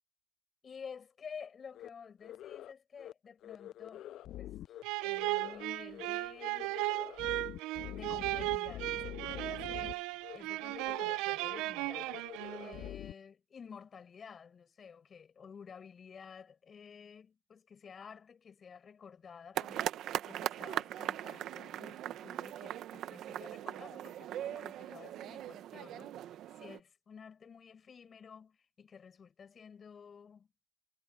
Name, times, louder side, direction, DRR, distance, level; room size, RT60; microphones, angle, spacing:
voice 1, 0.6-4.0 4.4-4.5 5.0-6.8 7.9-10.1 10.3-12.3 12.6-30.5, left 6 dB, 25° left, 7.1 m, -52 dB
sound 1, 1.7-1.9 2.2-2.7 3.0-3.1 3.4-4.8 5.1-5.7 5.9-6.1 6.3-9.9 10.2-10.4 10.7-11.2 11.5-11.6 11.9-13.1, left 13 dB, 45° left, 0.5 m, -46 dB
sound 2, 4.8-12.9, right 20 dB, 60° right, 0.8 m, -36 dB
sound 3, 19.5-26.8, right 12 dB, 45° right, 1.2 m, -40 dB
cardioid pair, 140°, 0 cm